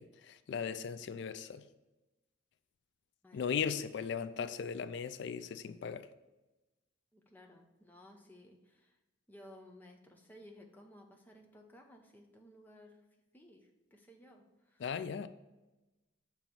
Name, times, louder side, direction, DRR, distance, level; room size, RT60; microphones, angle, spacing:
voice 1, 0.0-1.6 3.3-6.1 14.8-15.3, left 6 dB, 60° left, 12 dB, 0.3 m, -37 dB
voice 2, 7.1-9.0 9.3-13.0 13.3-14.8, left 1 dB, 10° left, 2 dB, 0.7 m, -57 dB
6.9 x 3.0 x 5.8 m, 1.1 s
head